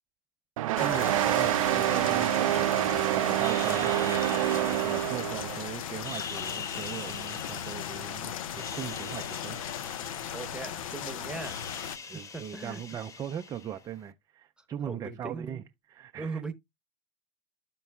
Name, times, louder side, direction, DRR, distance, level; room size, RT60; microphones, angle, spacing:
sound 1, 0.6-5.7, right 15 dB, 85° right, 0.4 m, -27 dB
sound 2, 0.8-12.0, left 9 dB, 85° left, 0.6 m, -37 dB
voice 1, 0.8-4.2 4.6-9.6 12.1-15.6 15.9-16.4, right 9 dB, 20° right, 0.4 m, -39 dB
sound 3, 3.4-5.5 5.9-8.1 8.5-10.9 11.1-14.0, left 5 dB, 20° left, 0.6 m, -44 dB
voice 2, 10.3-12.8 14.6-15.6 16.2-16.5, right 3 dB, 5° right, 0.9 m, -40 dB
13.0 x 4.5 x 2.3 m
supercardioid pair, 120°, 17 cm